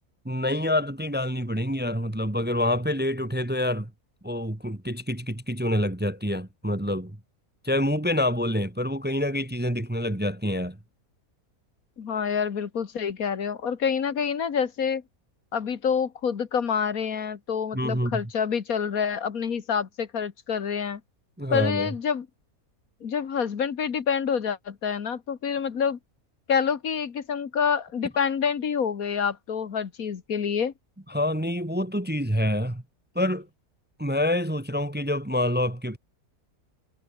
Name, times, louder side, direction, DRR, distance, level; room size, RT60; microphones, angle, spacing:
voice 1, 0.2-3.9 4.2-7.1 7.6-10.8 17.7-18.2 21.4-21.9 31.1-32.8 33.1-33.5 34.0-36.0, left 1 dB, 10° right, 1.1 m, -27 dB
voice 2, 12.0-15.0 15.5-21.0 21.5-22.3 23.0-26.0 26.5-30.7, left 7 dB, 70° left, 1.9 m, -27 dB
omnidirectional pair, 1.5 m